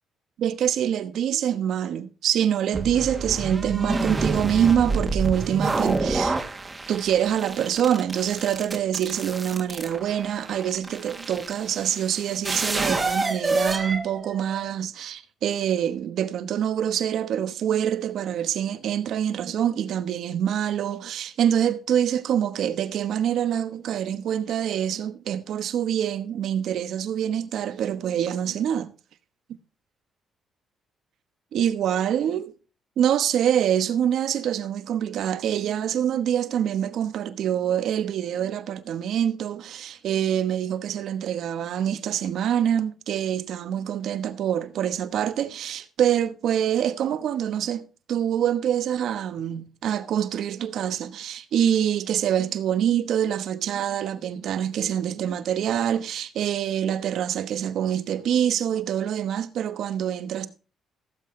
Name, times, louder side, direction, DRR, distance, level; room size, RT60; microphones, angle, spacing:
voice 1, 0.4-6.4 6.9-28.9 31.5-32.5 33.0-60.5, right 9 dB, 75° right, 1.1 m, -25 dB
sound 1, 2.7-14.7, right 3 dB, 25° right, 1.7 m, -28 dB
16.0 x 7.6 x 3.2 m
cardioid pair, 90°, 0 cm